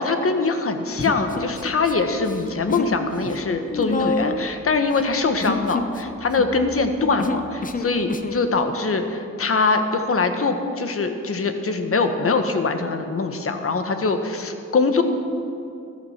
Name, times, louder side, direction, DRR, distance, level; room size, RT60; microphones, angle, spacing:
voice 1, 0.0-15.0, left 3 dB, 50° left, 7 dB, 1.4 m, -23 dB
Human voice, 1.0-1.9 2.2-3.0 3.2-8.4, left 3 dB, 25° left, 0.8 m, -29 dB
13.5 x 12.5 x 6.0 m, 2.6 s
cardioid pair, 75°, 30 cm